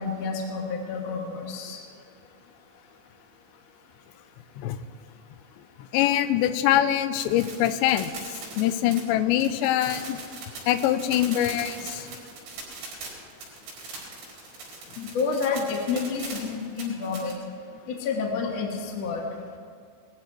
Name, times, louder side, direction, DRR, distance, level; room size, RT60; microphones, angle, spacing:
voice 1, 0.0-1.8 15.0-17.3 17.9-19.2, left 5 dB, 50° left, 1 dB, 2.1 m, -29 dB
voice 2, 5.9-8.1 8.6-10.2 10.7-12.1, left 12 dB, 80° left, 11 dB, 2.8 m, -23 dB
sound 1, 7.2-17.3, right 4 dB, 80° right, 7.0 m, -40 dB
21.5 x 14.5 x 4.6 m, 2.2 s
omnidirectional pair, 5.4 m